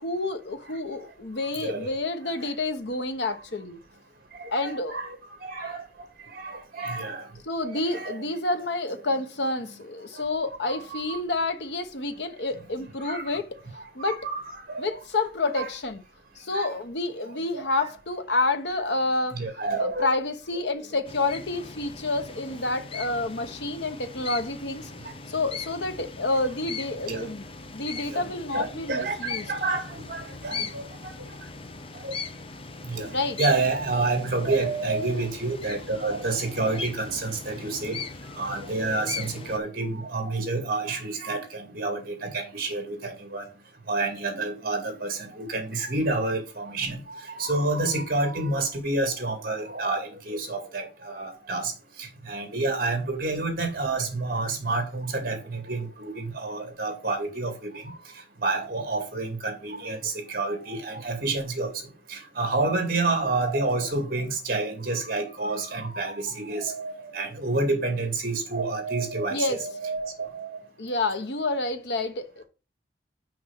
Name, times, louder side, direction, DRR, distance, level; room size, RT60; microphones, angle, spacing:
voice 1, 0.0-3.8 4.5-5.0 7.4-13.6 13.9-14.2 14.8-16.0 16.4-19.4 19.7-24.9 25.3-27.5 27.7-29.5 33.1-33.5 69.3-69.7 70.8-72.4, left 2 dB, 75° left, 1.0 m, -29 dB
voice 2, 1.6-1.9 2.4-2.5 4.4-5.2 5.4-5.8 6.3-7.3 7.6-8.2 10.7-11.2 13.0-13.3 13.7-15.0 15.6-15.7 16.5-16.7 17.2-17.8 19.3-20.1 27.1-27.3 28.1-28.2 28.5-31.1 31.9-32.1 32.8-33.1 33.4-38.0 38.3-43.5 43.9-51.7 52.0-58.0 58.4-61.8 62.1-70.6, right 3 dB, 55° right, 2.4 m, -29 dB
sound 1, 21.1-39.6, left 4 dB, 30° left, 0.6 m, -39 dB
6.0 x 5.5 x 5.2 m
head